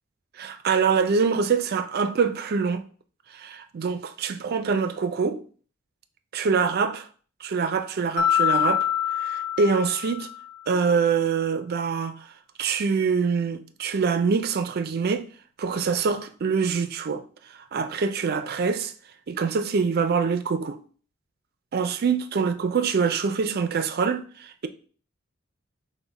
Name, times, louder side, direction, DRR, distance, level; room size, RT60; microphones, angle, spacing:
voice 1, 0.4-2.8 3.3-5.4 6.3-7.1 7.4-8.9 9.2-10.3 10.7-12.2 12.6-15.2 15.6-17.2 17.7-18.9 19.3-20.8 21.7-24.7, right 5 dB, 50° right, 0.4 m, -25 dB
Mallet percussion, 8.2-10.5, left 10 dB, 80° left, 0.7 m, -25 dB
6.1 x 2.1 x 3.9 m
head